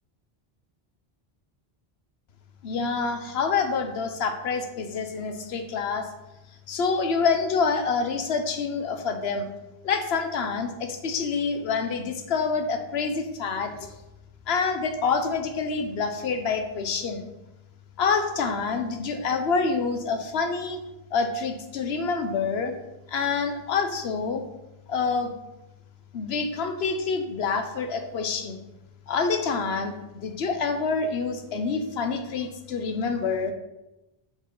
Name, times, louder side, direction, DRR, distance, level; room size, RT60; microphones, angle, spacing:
voice 1, 2.6-6.1 6.7-9.5 9.8-13.7 14.5-17.3 18.0-20.8 21.1-22.7 23.1-24.4 24.9-25.3 26.1-28.6 29.1-33.5, left 5 dB, 75° left, 6 dB, 1.1 m, -27 dB
6.9 x 6.5 x 3.9 m, 0.97 s
omnidirectional pair, 1.1 m